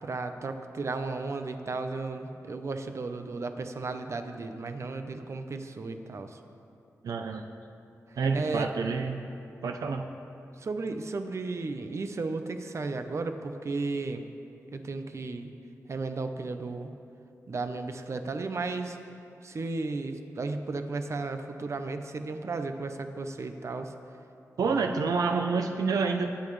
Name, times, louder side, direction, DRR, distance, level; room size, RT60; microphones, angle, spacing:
voice 1, 0.0-6.3 8.3-8.7 10.6-14.2 14.7-15.5 15.9-16.9 17.5-19.0 19.4-23.9 24.7-24.9, right 3 dB, 55° right, 7 dB, 0.8 m, -34 dB
voice 2, 7.0-7.4 8.2-9.2 9.6-10.1 24.6-26.3, right 4 dB, 90° right, 4 dB, 0.6 m, -28 dB
22.5 x 8.8 x 3.3 m, 2.7 s
cardioid pair, 80°, 6 cm